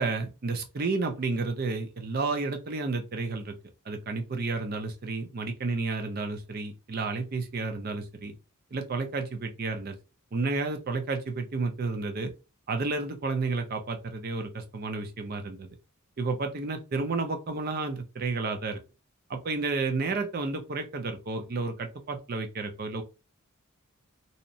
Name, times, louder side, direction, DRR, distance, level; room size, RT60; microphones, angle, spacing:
voice 1, 0.0-3.5 3.9-8.3 8.7-10.0 10.3-12.3 12.7-15.8 16.2-18.8 19.3-23.0, right 3 dB, 45° right, 6 dB, 0.5 m, -31 dB
2.7 x 2.0 x 2.6 m, 0.29 s
head